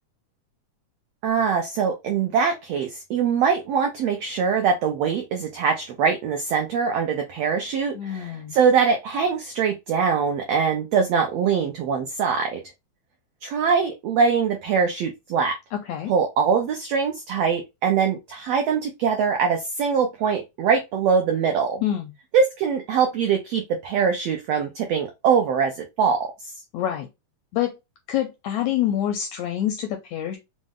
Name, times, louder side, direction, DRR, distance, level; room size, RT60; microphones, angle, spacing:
voice 1, 1.2-12.6 13.4-15.5 16.1-21.8 22.3-26.3, right 6 dB, 85° right, 1.4 m, -23 dB
voice 2, 7.9-8.6 15.7-16.1 21.8-22.1 26.7-27.1 27.5-27.8 28.1-30.4, left 11 dB, 80° left, 1.6 m, -26 dB
5.2 x 2.1 x 3.5 m
omnidirectional pair, 3.8 m